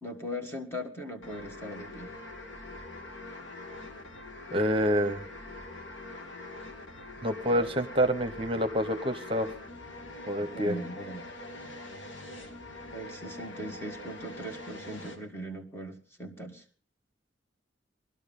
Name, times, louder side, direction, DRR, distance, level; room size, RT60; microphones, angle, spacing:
voice 1, 0.0-2.1 7.5-7.7 10.4-11.3 12.9-16.6, equal, 15° left, 3 dB, 1.7 m, -39 dB
sound 1, 1.2-15.2, left 2 dB, 80° left, 2.4 m, -44 dB
voice 2, 4.5-5.3 7.2-9.5 10.3-10.7, equal, 30° right, 8 dB, 1.0 m, -27 dB
19.5 x 12.5 x 5.4 m, 0.41 s
head